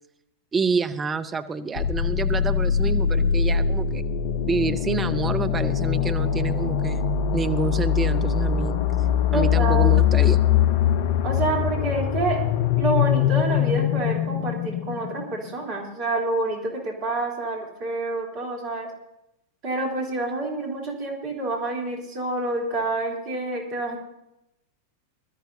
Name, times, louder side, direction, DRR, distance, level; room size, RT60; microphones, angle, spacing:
voice 1, 0.5-4.0 4.5-8.8 9.3-10.4, right 5 dB, 20° right, 10 dB, 0.7 m, -28 dB
sound 1, 1.8-15.5, left 9 dB, 50° left, 0.6 m, -22 dB
voice 2, 9.3-9.9 11.2-12.4 12.8-18.9 19.6-24.0, right 2 dB, 40° right, -1 dB, 3.4 m, -28 dB
21.5 x 13.0 x 2.7 m, 0.87 s
figure-of-eight pair, 90°, 0 cm